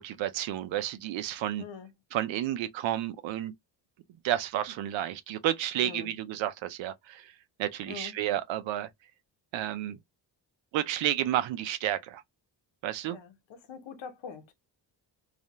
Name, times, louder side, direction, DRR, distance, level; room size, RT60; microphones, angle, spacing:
voice 1, 0.0-1.6 2.1-3.5 4.2-7.2 7.6-8.9 9.5-10.0 10.7-12.2 12.8-13.2, right 12 dB, 90° right, 0.6 m, -31 dB
voice 2, 1.6-1.9 5.8-6.1 7.9-8.2 13.1-14.4, left 6 dB, 80° left, 0.9 m, -43 dB
2.4 x 2.1 x 2.8 m
cardioid pair, 70°, 44 cm